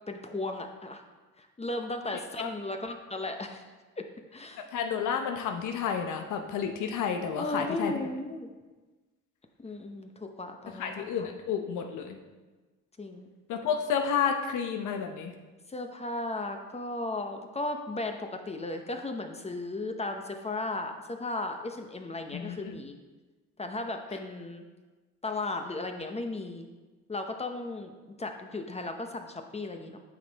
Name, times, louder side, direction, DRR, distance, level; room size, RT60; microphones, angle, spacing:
voice 1, 0.1-1.0 1.4-3.6 4.3-4.6 7.4-8.5 9.6-11.3 13.0-13.3 15.7-23.0 23.6-24.6 25.2-26.7 27.1-27.9 28.2-30.0, left 2 dB, 20° left, 5 dB, 0.7 m, -35 dB
voice 2, 4.7-7.9 10.8-12.2 13.5-15.3 22.3-22.6, left 7 dB, 80° left, 5 dB, 0.8 m, -30 dB
9.0 x 5.3 x 4.0 m, 1.3 s
cardioid pair, 90°, 30 cm